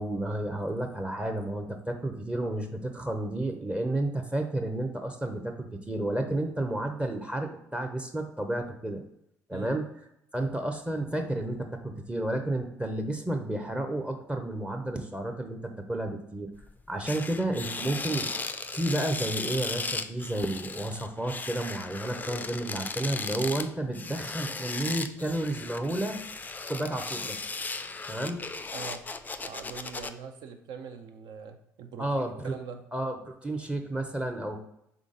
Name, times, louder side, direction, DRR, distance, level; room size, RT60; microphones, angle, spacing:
voice 1, 0.0-9.0 9.5-9.9 10.3-16.5 16.9-26.2 26.7-27.4 28.1-28.4 32.0-32.5 32.9-34.6, right 1 dB, 15° right, 5 dB, 0.7 m, -31 dB
sound 1, 16.5-16.7 17.1-30.1, left 3 dB, 20° left, 0.4 m, -36 dB
voice 2, 28.7-29.1 29.4-32.9, right 6 dB, 65° right, 6 dB, 0.6 m, -43 dB
3.8 x 3.6 x 3.8 m, 0.79 s
hypercardioid pair, 55°, 8 cm